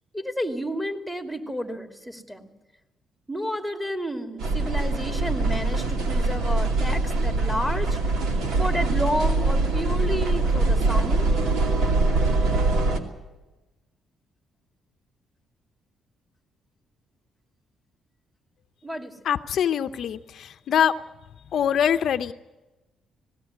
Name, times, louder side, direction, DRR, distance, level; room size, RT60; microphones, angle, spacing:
voice 1, 0.1-2.5 3.3-8.0 8.6-11.3 18.8-19.1, equal, 5° right, 4 dB, 2.7 m, -31 dB
sound 1, 4.4-13.0, right 2 dB, 80° right, 2.6 m, -23 dB
voice 2, 19.2-20.9 21.5-22.3, left 9 dB, 65° left, 10 dB, 0.7 m, -23 dB
19.5 x 16.5 x 9.6 m, 1.1 s
cardioid pair, 90°, 0 cm